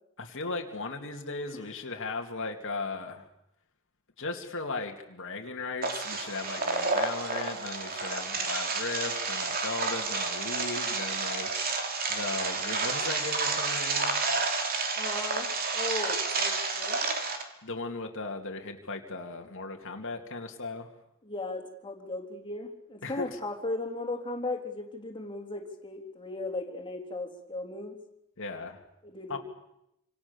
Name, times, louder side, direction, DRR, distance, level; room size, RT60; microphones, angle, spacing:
voice 1, 0.2-3.3 4.2-14.2 17.6-20.9 23.0-23.4 28.4-28.8 29.3-29.4, left 3 dB, 60° left, 3 dB, 2.4 m, -37 dB
sound 1, 5.8-17.4, right 4 dB, 40° right, 3.2 m, -30 dB
voice 2, 15.0-17.0 21.2-28.0 29.0-29.4, left 2 dB, 20° left, 3 dB, 3.6 m, -37 dB
28.0 x 26.5 x 7.1 m, 0.83 s
head